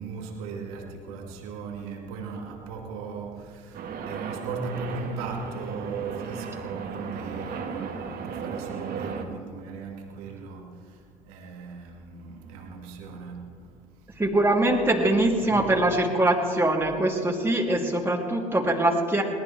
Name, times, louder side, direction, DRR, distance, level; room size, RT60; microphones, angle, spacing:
voice 1, 0.0-14.2 15.4-15.6, right 4 dB, 75° right, 1 dB, 2.2 m, -38 dB
sound 1, 3.7-9.2, right 6 dB, 55° right, 2.0 m, -35 dB
voice 2, 14.2-19.2, right 1 dB, 10° right, -2 dB, 3.1 m, -23 dB
22.0 x 18.0 x 3.5 m, 2.1 s
hypercardioid pair, 55°, 19 cm